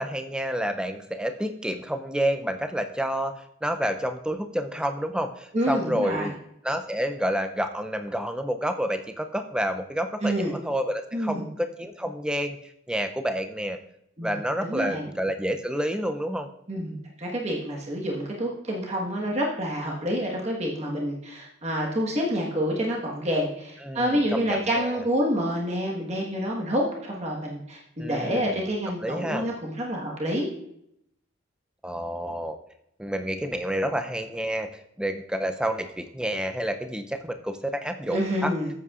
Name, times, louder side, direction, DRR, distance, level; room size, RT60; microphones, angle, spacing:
voice 1, 0.0-6.3 6.6-13.8 14.2-16.5 23.8-25.0 28.0-28.6 29.0-29.5 31.8-32.6 33.0-38.5, equal, 5° right, 7 dB, 0.4 m, -29 dB
voice 2, 5.5-6.3 10.2-10.6 11.1-11.5 14.2-14.3 14.6-15.1 16.7-30.5 38.1-38.7, equal, 30° right, -2 dB, 1.4 m, -28 dB
14.0 x 8.2 x 2.4 m, 0.76 s
head